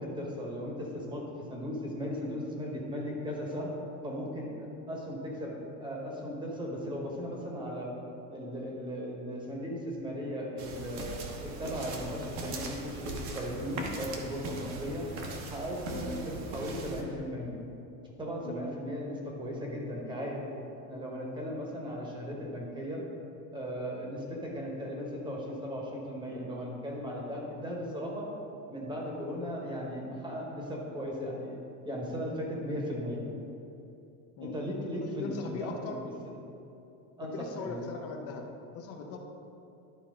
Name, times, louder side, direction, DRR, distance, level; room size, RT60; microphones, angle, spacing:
voice 1, 0.0-3.7 4.0-5.5 5.8-7.9 8.3-11.2 11.4-15.1 15.5-17.6 18.2-20.4 20.9-23.0 23.5-28.3 28.7-31.6 31.8-33.3 34.4-36.1 37.2-37.8, equal, 10° right, -2 dB, 1.2 m, -37 dB
sound 1, 10.6-17.0, right 2 dB, 40° right, 1.1 m, -40 dB
voice 2, 35.0-36.0 37.2-38.5 38.7-39.2, left 4 dB, 35° left, 3 dB, 0.8 m, -39 dB
11.5 x 4.2 x 3.8 m, 2.8 s
supercardioid pair, 145°, 42 cm